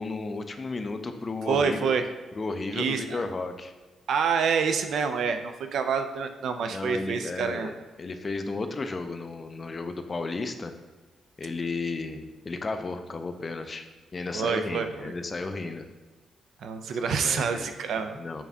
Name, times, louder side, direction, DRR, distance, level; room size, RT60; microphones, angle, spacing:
voice 1, 0.0-1.9 2.4-3.7 6.7-10.7 11.4-13.9 14.1-15.9 17.1-17.8 18.2-18.4, left 3 dB, 30° left, 7 dB, 0.3 m, -33 dB
voice 2, 1.5-2.1 2.7-3.2 4.1-7.7 14.3-15.1 16.6-18.2, right 6 dB, 70° right, 7 dB, 0.3 m, -27 dB
7.0 x 2.6 x 2.3 m, 1.3 s
cardioid pair, 115°, 0 cm